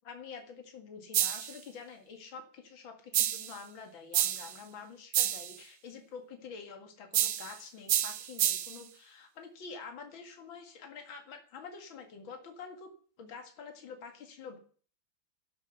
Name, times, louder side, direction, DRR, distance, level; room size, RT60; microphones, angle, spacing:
voice 1, 0.1-12.9 13.2-14.6, left 5 dB, 70° left, 4 dB, 2.8 m, -47 dB
sound 1, 1.1-1.6 3.1-3.6 4.1-4.6 5.1-5.6 7.1-7.6 7.9-8.8, right 11 dB, 80° right, 1.8 m, -29 dB
12.5 x 11.5 x 6.8 m, 0.43 s
omnidirectional pair, 2.2 m